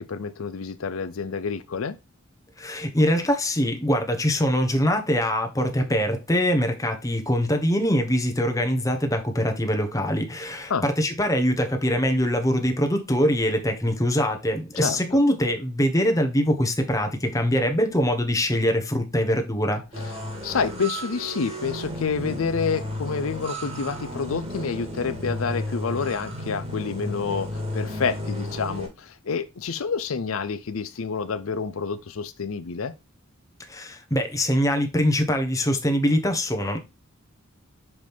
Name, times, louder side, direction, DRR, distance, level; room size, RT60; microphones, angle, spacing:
voice 1, 0.0-2.0 10.7-10.8 14.8-15.0 20.4-32.9, left 5 dB, 75° left, 0.6 m, -28 dB
voice 2, 2.6-19.8 33.7-36.8, equal, 15° left, 1.2 m, -23 dB
sound 1, 19.9-28.9, left 1 dB, 30° right, 2.1 m, -33 dB
6.1 x 5.0 x 3.5 m
head